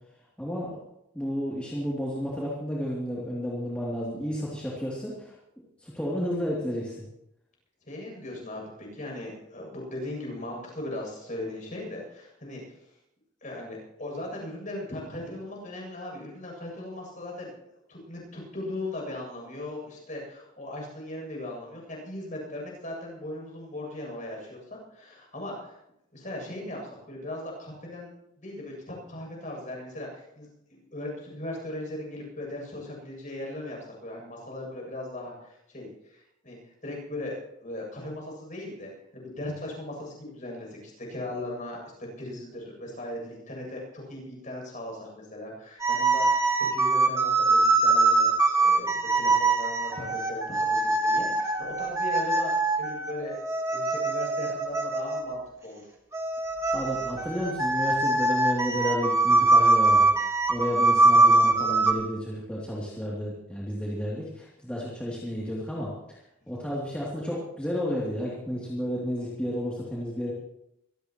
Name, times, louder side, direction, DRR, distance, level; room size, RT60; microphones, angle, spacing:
voice 1, 0.4-0.8 1.1-5.3 5.8-7.0 56.7-65.9 66.5-70.3, equal, 5° left, -7 dB, 2.9 m, -32 dB
voice 2, 7.9-12.6 13.4-17.5 17.9-25.8 26.1-36.6 36.8-41.8 42.2-46.5 46.7-53.4 53.7-55.8, left 1 dB, 35° left, -1 dB, 7.9 m, -38 dB
sound 1, 45.8-55.4 56.1-61.9, right 3 dB, 15° right, 1.8 m, -23 dB
24.5 x 16.5 x 3.1 m, 0.80 s
head